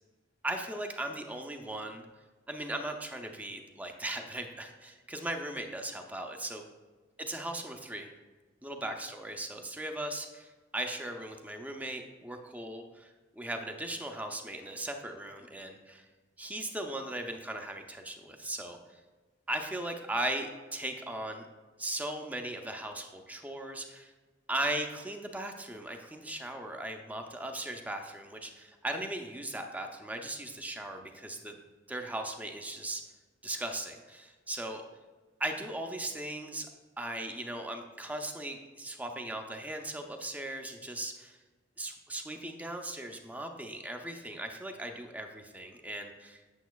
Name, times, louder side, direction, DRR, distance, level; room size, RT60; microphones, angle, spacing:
voice 1, 0.4-2.1 2.5-6.7 7.2-8.1 8.6-16.1 16.4-19.0 19.5-21.4 21.8-24.1 24.5-31.6 31.9-33.0 33.4-34.8 35.4-36.7 37.0-41.4 41.8-46.4, right 1 dB, 10° right, 4 dB, 0.5 m, -38 dB
8.1 x 7.0 x 2.3 m, 1.3 s
head